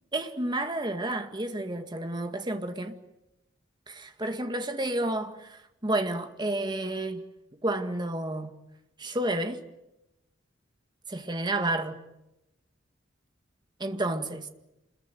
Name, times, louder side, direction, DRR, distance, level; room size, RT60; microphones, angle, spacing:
voice 1, 0.1-2.9 3.9-7.2 7.6-8.5 9.0-9.6 11.1-12.0 13.8-14.5, right 1 dB, 25° right, 2.1 m, -30 dB
28.0 x 21.5 x 7.7 m
head